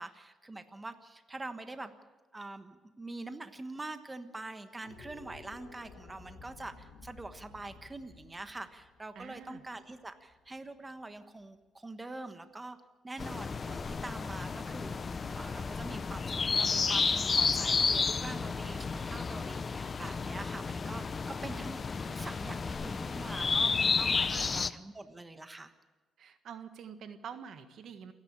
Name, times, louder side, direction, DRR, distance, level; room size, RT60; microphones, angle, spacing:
voice 1, 0.0-1.9 2.3-12.8 13.0-15.0 15.3-25.7, right 2 dB, 20° right, 9 dB, 1.3 m, -44 dB
sound 1, 4.7-11.1, left 4 dB, 90° left, 2.4 m, -54 dB
voice 2, 9.1-9.6 24.2-24.6 26.2-28.1, right 7 dB, 70° right, 9 dB, 1.5 m, -46 dB
sound 2, 13.2-24.7, left 5 dB, 35° left, 0.7 m, -31 dB
28.5 x 10.5 x 8.8 m, 1.2 s
cardioid pair, 90°, 0 cm